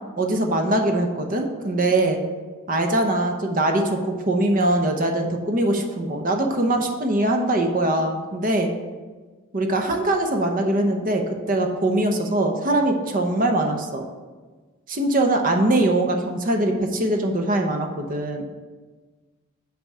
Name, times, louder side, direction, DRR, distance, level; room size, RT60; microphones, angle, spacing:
voice 1, 0.2-2.2 2.7-8.7 9.5-14.0 14.9-18.4, right 1 dB, 40° right, 4 dB, 0.8 m, -22 dB
5.8 x 4.9 x 6.5 m, 1.4 s
head